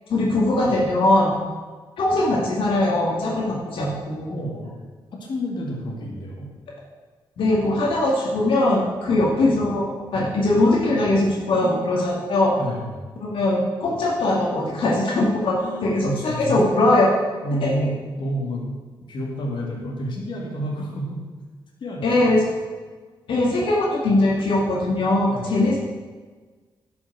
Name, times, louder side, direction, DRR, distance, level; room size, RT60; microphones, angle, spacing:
voice 1, 0.1-1.3 2.0-4.4 7.4-12.5 13.2-17.1 17.6-17.7 22.0-22.5 23.3-25.8, left 2 dB, 75° left, -3 dB, 2.2 m, -21 dB
voice 2, 4.3-4.7 5.1-6.5 9.2-9.4 11.6-11.7 12.6-12.9 15.6-16.8 17.4-18.7 19.1-21.2 21.8-22.3 25.3-25.6, equal, 60° left, -2 dB, 2.3 m, -29 dB
11.5 x 6.2 x 6.2 m, 1.4 s
cardioid pair, 105°, 9 cm